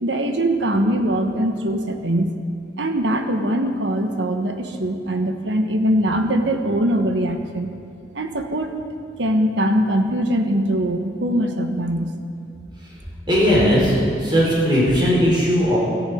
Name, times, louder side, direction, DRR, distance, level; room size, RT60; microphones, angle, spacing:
voice 1, 0.0-2.4 2.8-7.7 8.1-8.8 9.2-12.1, right 1 dB, 80° right, 6 dB, 1.4 m, -22 dB
voice 2, 13.3-15.8, equal, 25° right, -5 dB, 4.9 m, -17 dB
17.5 x 14.0 x 5.2 m, 2.3 s
head